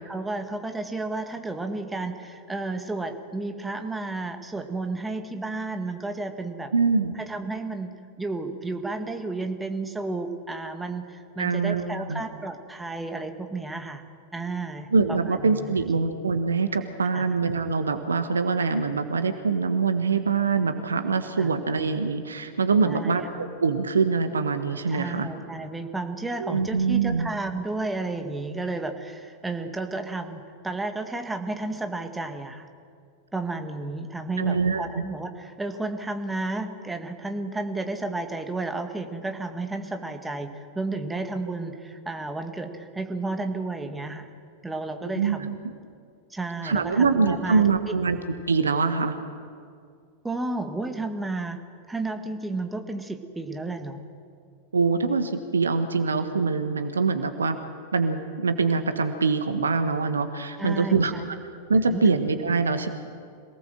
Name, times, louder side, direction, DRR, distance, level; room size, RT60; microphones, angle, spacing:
voice 1, 0.1-6.7 7.2-7.9 8.2-14.0 14.3-16.1 17.1-17.3 21.4-21.5 22.8-23.2 24.9-32.7 33.3-44.3 44.6-45.4 46.3-47.6 50.2-51.6 51.9-54.0 60.6-61.2 61.9-62.1, right 2 dB, 10° right, 6 dB, 1.9 m, -32 dB
voice 2, 6.7-7.2 11.4-12.2 14.9-25.3 26.4-27.3 34.4-35.0 45.1-45.5 46.6-48.2 48.5-49.2 54.7-57.6 57.9-61.1 61.7-62.9, right 4 dB, 70° right, 9 dB, 1.5 m, -24 dB
26.0 x 18.5 x 7.6 m, 2.2 s
figure-of-eight pair, 90°, 0 cm